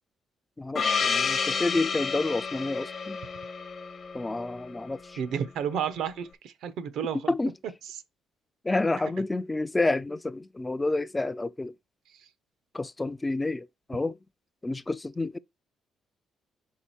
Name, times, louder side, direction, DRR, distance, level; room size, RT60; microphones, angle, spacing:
voice 1, 0.6-3.2 4.1-5.2 7.3-7.5 8.6-11.7 12.7-14.2 14.6-15.4, left 2 dB, 15° left, 0.4 m, -29 dB
Gong, 0.7-5.1, left 5 dB, 50° left, 1.0 m, -30 dB
voice 2, 5.2-7.3, right 8 dB, 75° right, 0.8 m, -31 dB
5.0 x 4.8 x 4.3 m
cardioid pair, 100°, 0 cm